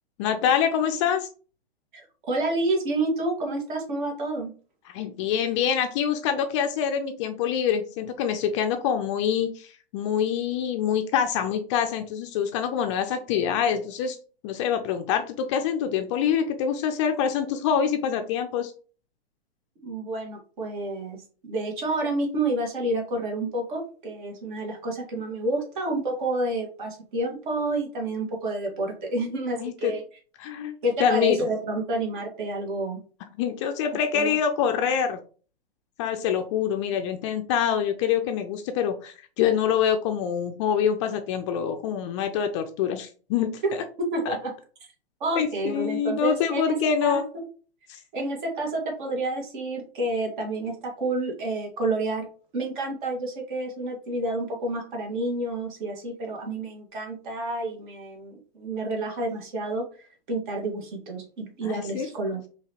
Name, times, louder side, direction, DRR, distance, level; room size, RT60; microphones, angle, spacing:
voice 1, 0.2-1.3 4.9-14.2 14.4-18.7 29.6-30.0 30.4-30.7 31.0-31.5 33.4-35.2 36.0-43.6 44.3-44.4 45.3-47.3 47.9-48.0 61.6-62.1, left 8 dB, 30° left, 7 dB, 0.4 m, -25 dB
voice 2, 2.3-4.5 19.8-30.0 30.8-33.0 34.1-34.3 43.6-43.8 44.1-44.5 45.2-46.8 47.0-47.2 48.1-52.3 52.5-62.4, right 2 dB, 55° right, 1 dB, 1.8 m, -29 dB
4.7 x 2.8 x 2.9 m, 0.39 s
hypercardioid pair, 120°, 30 cm